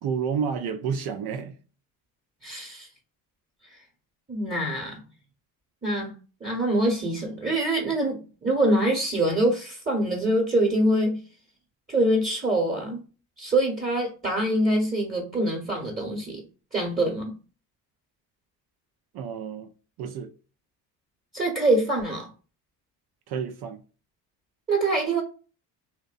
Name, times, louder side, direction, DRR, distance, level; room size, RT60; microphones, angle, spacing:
voice 1, 0.0-1.6 19.1-19.7 20.0-20.3 23.3-23.8, right 6 dB, 55° right, 0.5 m, -30 dB
voice 2, 2.4-2.9 3.7-3.8 4.3-5.0 5.8-6.1 6.4-11.2 11.9-13.0 13.4-16.4 16.7-17.3 21.3-22.3 24.7-25.2, right 1 dB, 20° right, 1.0 m, -24 dB
2.6 x 2.2 x 2.3 m
supercardioid pair, 65°, 46 cm